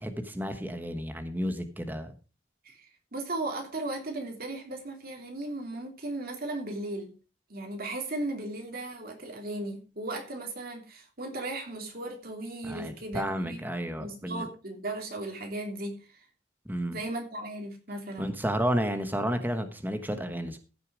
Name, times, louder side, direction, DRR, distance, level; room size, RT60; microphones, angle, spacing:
voice 1, 0.0-2.1 12.6-14.4 16.7-17.0 18.2-20.6, equal, 10° right, 8 dB, 1.2 m, -31 dB
voice 2, 2.6-7.1 7.5-13.7 13.9-16.2 16.9-18.4, right 2 dB, 55° right, 3 dB, 3.0 m, -36 dB
15.0 x 6.8 x 4.8 m, 0.34 s
head